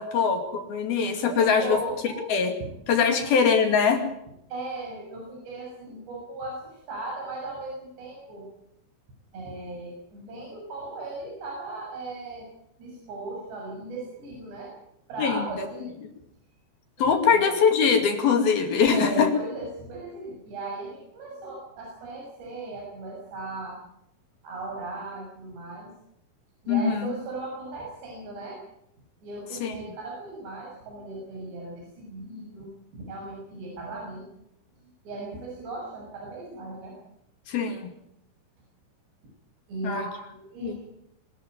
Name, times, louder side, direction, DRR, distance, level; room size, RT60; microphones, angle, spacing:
voice 1, 0.0-1.8 2.3-2.5 2.9-4.0 15.2-15.7 17.0-19.3 26.7-27.1 29.6-29.8 37.5-37.9 39.8-40.0 40.6-40.8, left 6 dB, 55° left, 6 dB, 3.9 m, -22 dB
voice 2, 1.3-2.3 2.6-2.7 3.1-3.2 4.5-8.5 9.3-12.5 12.8-14.7 15.1-16.0 17.0-17.4 18.8-23.8 24.4-25.9 26.6-28.6 29.2-34.3 35.1-36.9 39.7-40.8, right 2 dB, 60° right, -3 dB, 8.7 m, -37 dB
25.0 x 13.0 x 9.4 m, 0.79 s
omnidirectional pair, 5.6 m